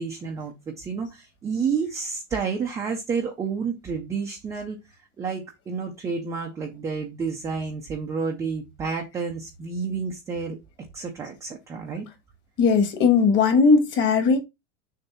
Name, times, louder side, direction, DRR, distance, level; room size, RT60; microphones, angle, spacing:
voice 1, 0.0-4.8 5.2-10.6 10.9-12.1, right 5 dB, 10° right, 0.4 m, -30 dB
voice 2, 12.6-14.4, left 5 dB, 30° left, 1.5 m, -18 dB
6.8 x 2.6 x 5.5 m
supercardioid pair, 170°, 36 cm